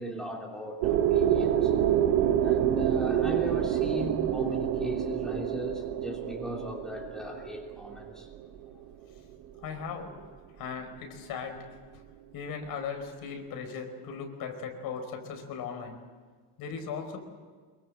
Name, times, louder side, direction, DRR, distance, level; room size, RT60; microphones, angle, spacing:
voice 1, 0.0-1.7 2.4-8.3, equal, ahead, -1 dB, 3.0 m, -38 dB
sound 1, 0.8-8.6, right 10 dB, 65° right, 1.5 m, -27 dB
voice 2, 9.6-10.1 10.6-11.7 12.3-16.0 16.6-17.2, left 6 dB, 65° left, 5 dB, 4.8 m, -38 dB
25.5 x 23.0 x 7.8 m, 1.5 s
cardioid pair, 175°, 38 cm